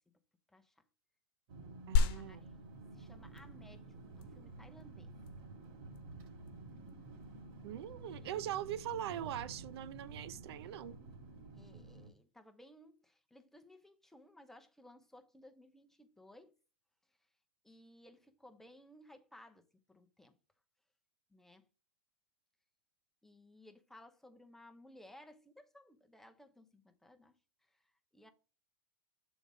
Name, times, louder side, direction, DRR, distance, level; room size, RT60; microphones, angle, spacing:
voice 1, 0.5-0.8 2.2-5.2 8.2-8.4 11.5-16.5 17.1-17.3 17.6-20.4 21.3-21.7 23.2-28.3, left 1 dB, 5° left, 0.9 m, -60 dB
sound 1, 1.5-12.1, right 3 dB, 55° right, 2.7 m, -51 dB
voice 2, 1.9-2.5 7.6-11.0, right 11 dB, 75° right, 0.6 m, -41 dB
sound 2, 2.0-11.9, left 5 dB, 55° left, 1.1 m, -40 dB
6.9 x 4.1 x 4.9 m
hypercardioid pair, 120°, 13 cm